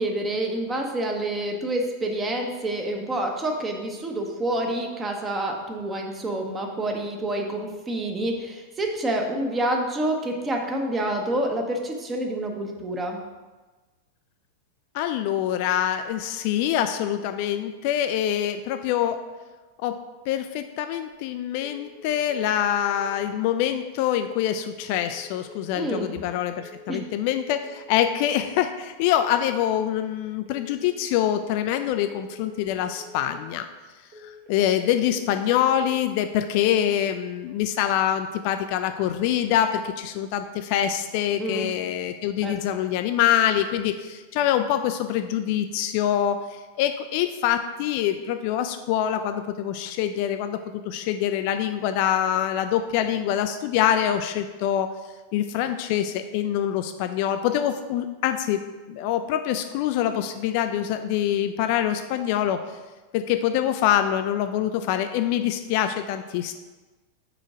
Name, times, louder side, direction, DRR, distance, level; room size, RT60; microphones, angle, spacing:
voice 1, 0.0-13.2 25.7-26.1 26.9-27.0 41.4-41.6 42.4-42.6, right 1 dB, 15° right, 2 dB, 0.9 m, -28 dB
voice 2, 14.9-19.2 19.8-20.0 20.3-33.7 34.2-50.6 50.8-54.9 55.3-58.6 58.9-62.6 63.1-66.5, left 10 dB, 45° left, 8 dB, 0.3 m, -25 dB
sound 1, 21.6-22.0 22.3-22.7 22.9-23.3 24.1-24.5 24.8-25.2 25.4-25.8 26.6-27.0 27.3-27.7 27.9-28.3 29.1-29.5 29.8-30.2 30.4-30.8 31.6-32.0 32.3-32.7 33.0-33.3 34.1-34.5 34.8-35.2 35.5-35.9, left 3 dB, 50° right, 1.4 m, -47 dB
4.9 x 4.8 x 4.8 m, 1.2 s
figure-of-eight pair, 90°, 0 cm